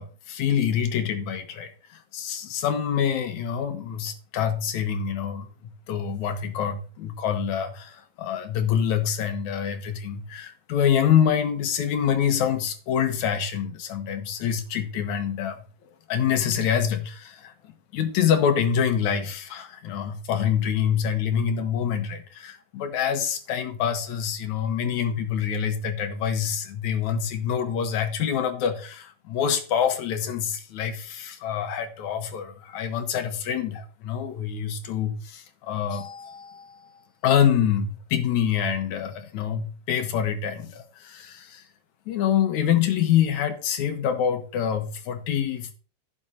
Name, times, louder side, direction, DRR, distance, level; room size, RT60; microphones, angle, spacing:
voice 1, 0.0-15.6 16.1-36.9 37.2-41.6 42.1-45.7, left 8 dB, 80° left, 2.6 m, -26 dB
16.0 x 6.2 x 2.8 m
omnidirectional pair, 3.3 m